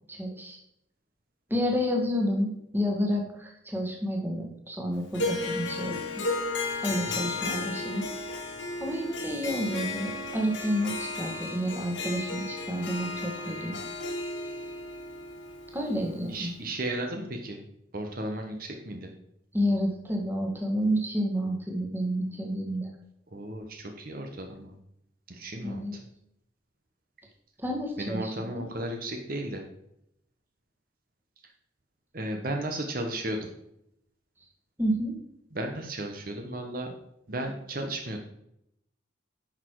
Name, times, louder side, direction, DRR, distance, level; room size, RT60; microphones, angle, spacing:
voice 1, 0.1-0.6 1.5-6.0 6.8-8.0 8.8-13.8 15.7-16.5 19.5-22.9 25.6-26.0 27.6-28.5 34.8-35.2, equal, 10° right, 0 dB, 1.7 m, -30 dB
Harp, 5.1-16.4, left 2 dB, 80° left, 2.1 m, -34 dB
voice 2, 6.9-7.3 16.3-17.6 17.9-19.1 23.3-24.7 25.3-26.0 28.0-29.6 32.1-33.5 35.5-36.9 37.3-38.2, right 1 dB, 45° right, 3 dB, 1.1 m, -34 dB
10.5 x 6.4 x 4.7 m, 0.78 s
head